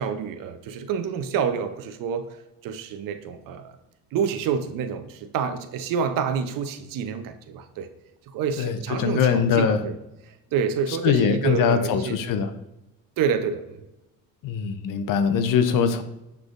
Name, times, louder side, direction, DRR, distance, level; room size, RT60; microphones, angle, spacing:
voice 1, 0.0-3.7 4.1-7.9 8.3-9.9 10.5-12.2 13.2-13.8, right 7 dB, 60° right, 9 dB, 0.6 m, -28 dB
voice 2, 8.6-9.8 11.0-12.5 14.4-16.0, left 7 dB, 55° left, 9 dB, 0.6 m, -22 dB
5.9 x 3.3 x 2.5 m, 0.93 s
supercardioid pair, 85°, 39 cm